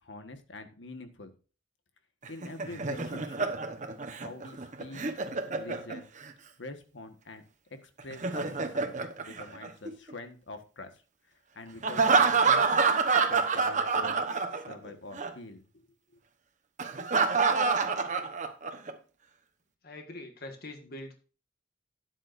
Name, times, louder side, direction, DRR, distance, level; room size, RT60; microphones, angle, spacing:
voice 1, 0.0-1.3 2.3-3.5 4.2-5.0 5.5-6.1 6.6-7.4 7.7-8.9 9.2-10.9 11.3-12.8 13.3-14.2 14.5-15.9 16.1-16.2, left 2 dB, 80° left, 7 dB, 1.5 m, -45 dB
Laughter, 2.2-6.3 8.0-10.1 11.8-14.9 15.2-15.3 16.8-18.9, right 4 dB, 40° right, 1.0 m, -27 dB
voice 2, 19.8-21.2, left 1 dB, 55° left, 4 dB, 1.8 m, -43 dB
12.5 x 9.9 x 2.6 m, 0.35 s
head